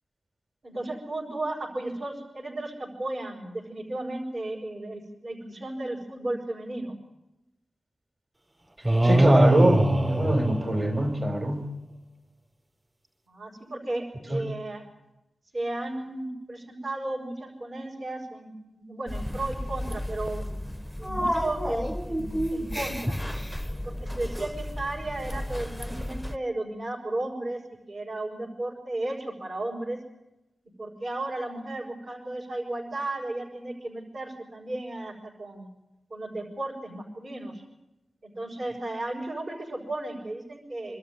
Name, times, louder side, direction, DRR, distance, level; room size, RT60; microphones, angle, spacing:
voice 1, 0.6-7.0 13.3-14.9 15.5-20.4 21.0-23.2 23.8-27.6 27.9-30.0 30.8-35.7 36.1-37.6 38.2-41.0, right 2 dB, 50° right, -4 dB, 5.6 m, -34 dB
sound 1, 8.8-11.4, right 1 dB, 20° right, 4.6 m, -22 dB
voice 2, 9.0-11.7 14.3-14.4, right 1 dB, 35° right, 6 dB, 4.1 m, -24 dB
sound 2, 19.1-26.4, equal, ahead, 0.7 m, -32 dB
26.5 x 13.0 x 9.8 m, 0.97 s
wide cardioid pair, 100°, 0 cm